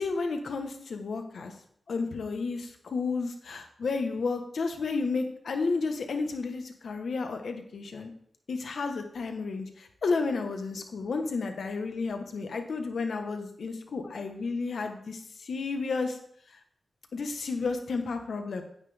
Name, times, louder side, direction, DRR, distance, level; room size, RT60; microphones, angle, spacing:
voice 1, 0.0-1.5 1.9-8.1 8.5-16.2 16.5-16.6 17.1-18.6, left 4 dB, 80° left, 5 dB, 1.3 m, -32 dB
9.5 x 9.3 x 3.5 m, 0.65 s
cardioid pair, 75°, 0 cm